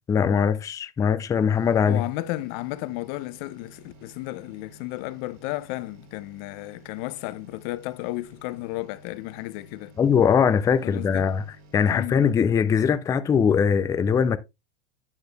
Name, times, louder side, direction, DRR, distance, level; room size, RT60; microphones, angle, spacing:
voice 1, 0.1-2.0 10.0-11.4 11.7-14.4, left 7 dB, 10° left, 0.3 m, -21 dB
sound 1, 1.5-13.1 13.5-13.6, right 1 dB, 75° right, 3.5 m, -52 dB
voice 2, 1.8-9.9 10.8-11.3 11.9-12.2, left 18 dB, 50° left, 0.6 m, -33 dB
8.9 x 6.2 x 2.2 m
hypercardioid pair, 110°, 33 cm